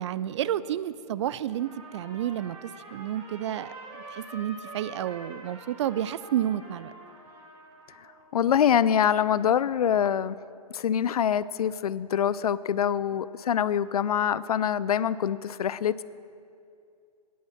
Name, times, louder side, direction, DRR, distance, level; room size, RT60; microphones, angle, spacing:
voice 1, 0.0-6.9, right 11 dB, 45° right, 17 dB, 0.4 m, -31 dB
Trumpet, 1.5-8.2, right 2 dB, 25° right, 2.0 m, -46 dB
voice 2, 8.3-10.4 10.7-16.0, left 9 dB, 70° left, 18 dB, 0.4 m, -25 dB
9.5 x 9.4 x 7.4 m, 2.4 s
hypercardioid pair, 130°, 20 cm